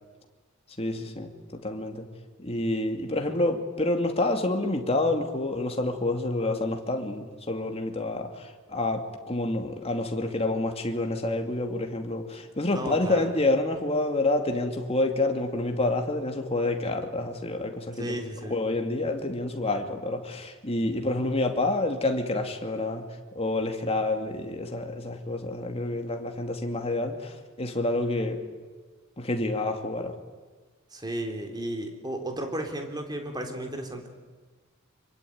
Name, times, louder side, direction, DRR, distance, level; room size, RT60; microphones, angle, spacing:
voice 1, 0.8-1.3 1.6-2.1 2.4-18.2 18.5-23.1 23.3-28.4 29.2-30.2, left 2 dB, 30° left, 4 dB, 2.5 m, -28 dB
voice 2, 12.7-13.3 18.0-18.5 20.9-21.2 30.9-34.1, right 1 dB, 20° right, 4 dB, 3.6 m, -34 dB
25.5 x 23.5 x 9.5 m, 1.4 s
head